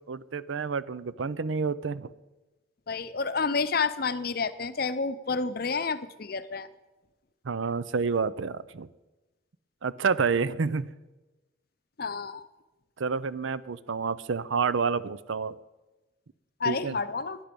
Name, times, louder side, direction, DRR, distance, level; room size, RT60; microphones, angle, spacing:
voice 1, 0.1-2.1 7.5-8.9 9.8-10.9 13.0-15.6 16.6-17.0, right 5 dB, 85° right, 17 dB, 0.6 m, -29 dB
voice 2, 2.9-6.7 12.0-12.5 16.6-17.4, left 4 dB, 50° left, 13 dB, 0.6 m, -29 dB
16.5 x 10.0 x 5.3 m, 1.1 s
head